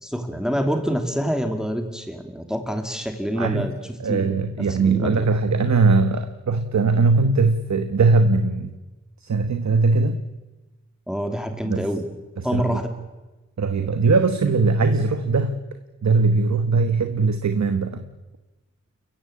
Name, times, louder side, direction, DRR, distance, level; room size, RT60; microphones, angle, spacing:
voice 1, 0.0-4.3 4.7-5.1 11.1-12.1 12.4-12.9, equal, ahead, 6 dB, 2.5 m, -26 dB
voice 2, 4.0-8.7 9.2-10.2 11.6-11.9 12.4-12.8 13.6-15.6 16.0-18.0, right 4 dB, 65° right, 9 dB, 1.3 m, -20 dB
29.5 x 15.0 x 8.6 m, 1.1 s
wide cardioid pair, 85°, 30 cm